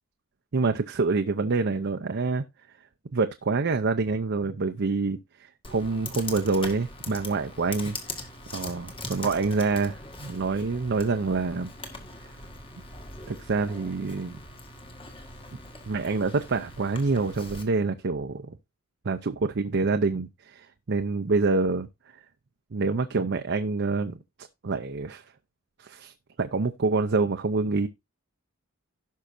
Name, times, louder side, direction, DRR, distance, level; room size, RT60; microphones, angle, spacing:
voice 1, 0.5-2.4 3.1-8.3 8.5-11.7 13.3-14.4 15.5-15.6 15.9-18.6 19.0-21.9 22.7-24.2 24.6-25.2 25.8-27.9, right 3 dB, 55° right, 0.6 m, -27 dB
Computer keyboard, 5.6-17.6, left 2 dB, 25° left, 1.7 m, -41 dB
16.5 x 5.6 x 2.6 m
head